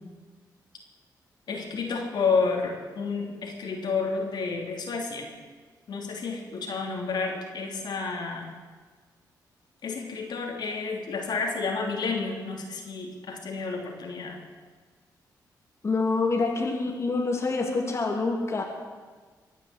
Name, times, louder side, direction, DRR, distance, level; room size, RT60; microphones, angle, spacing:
voice 1, 1.5-5.3 5.9-8.5 9.8-14.4, left 4 dB, 70° left, 1 dB, 3.1 m, -30 dB
voice 2, 15.8-18.6, left 3 dB, 35° left, 1 dB, 2.5 m, -26 dB
22.5 x 7.6 x 8.2 m, 1.5 s
cardioid pair, 95°, 8 cm